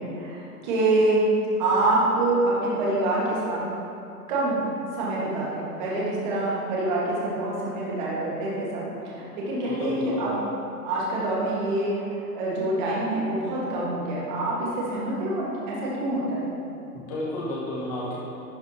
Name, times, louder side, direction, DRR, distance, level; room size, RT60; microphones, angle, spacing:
voice 1, 0.1-1.2 1.6-3.6 4.3-4.6 4.9-10.4 10.8-16.5, right 2 dB, 30° right, -6 dB, 1.7 m, -26 dB
voice 2, 9.6-10.3 16.9-18.2, left 1 dB, 25° left, -6 dB, 1.5 m, -32 dB
11.5 x 5.0 x 2.9 m, 2.8 s
hypercardioid pair, 165°, 47 cm